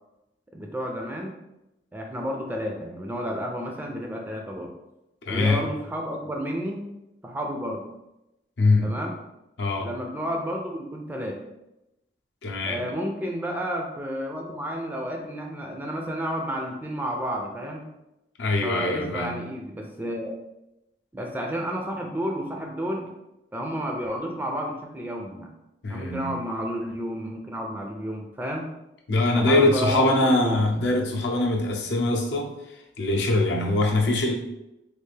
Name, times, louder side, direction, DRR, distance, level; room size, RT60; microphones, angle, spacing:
voice 1, 0.5-1.3 1.9-4.7 5.3-6.9 7.2-7.8 8.8-9.1 9.8-11.4 12.7-17.9 18.6-20.4 21.1-23.1 23.5-25.5 25.9-28.7 29.3-30.6, equal, 10° right, 1 dB, 0.3 m, -31 dB
voice 2, 5.3-5.6 8.6-8.9 9.6-9.9 12.4-12.8 18.4-19.4 25.8-26.4 29.1-32.6 33.0-34.3, left 2 dB, 70° left, 0 dB, 0.6 m, -23 dB
3.3 x 2.4 x 3.2 m, 0.91 s
head